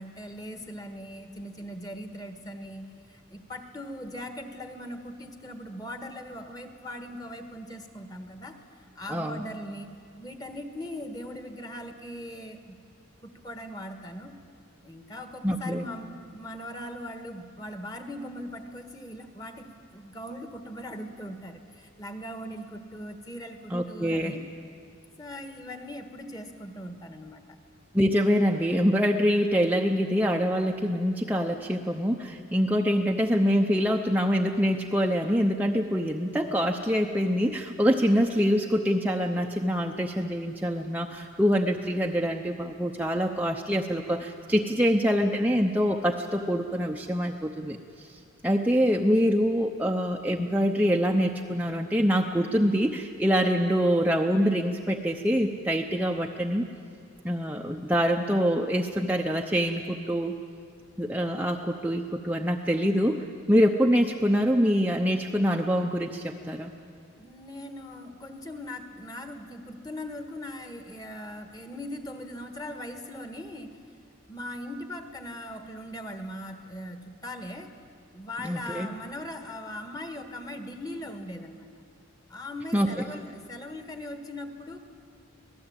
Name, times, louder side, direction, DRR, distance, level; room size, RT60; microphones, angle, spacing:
voice 1, 0.0-9.9 10.2-12.8 13.2-14.4 14.8-24.5 25.2-27.6 67.2-73.8 74.3-77.7 78.1-81.7 82.3-84.8, left 1 dB, 20° left, 6 dB, 1.6 m, -40 dB
voice 2, 9.1-9.4 15.4-15.9 23.7-24.3 27.9-56.7 57.2-60.3 61.0-66.7 78.4-78.9 82.7-82.9, equal, 10° right, 1 dB, 0.7 m, -25 dB
26.0 x 18.5 x 8.8 m, 2.3 s
head